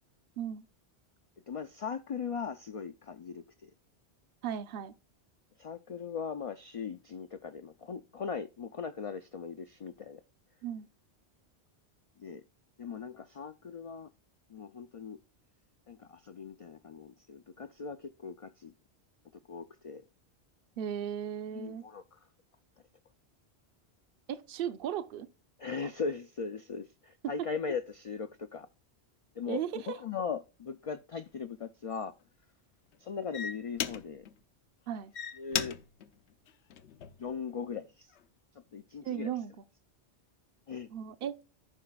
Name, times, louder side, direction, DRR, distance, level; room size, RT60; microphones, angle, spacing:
voice 1, 1.5-3.7 5.6-10.2 12.2-12.4 12.8-14.1 14.5-15.2 15.9-18.7 19.5-20.0 21.5-22.2 25.6-28.7 29.4-29.6 29.9-32.1 33.0-34.3 35.4-35.8 37.2-38.1 38.7-39.3 40.7-40.9, left 5 dB, 60° left, 0.3 m, -39 dB
voice 2, 4.4-4.9 10.6-10.9 20.8-21.8 24.3-25.3 25.8-25.9 27.2-27.5 29.5-30.0 34.9-35.1 39.0-39.5 40.9-41.4, right 9 dB, 60° right, 0.9 m, -36 dB
sound 1, 31.1-31.3 31.9-32.2 32.9-33.0 33.3-34.4 34.9-37.3 37.9-38.2, left 8 dB, 85° left, 1.0 m, -37 dB
14.5 x 5.8 x 2.3 m
omnidirectional pair, 1.1 m